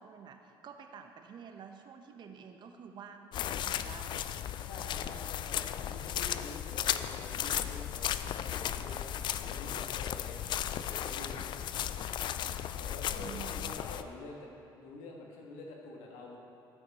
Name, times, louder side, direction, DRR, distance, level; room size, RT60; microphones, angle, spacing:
voice 1, 0.0-4.3 13.2-13.7, right 7 dB, 55° right, 5 dB, 0.9 m, -49 dB
sound 1, 3.3-14.0, left 10 dB, 55° left, 0.3 m, -35 dB
voice 2, 4.7-11.7 12.6-14.5 14.7-16.4, left 2 dB, 90° left, -1 dB, 1.5 m, -47 dB
13.5 x 5.9 x 4.2 m, 2.6 s
supercardioid pair, 90°, 9 cm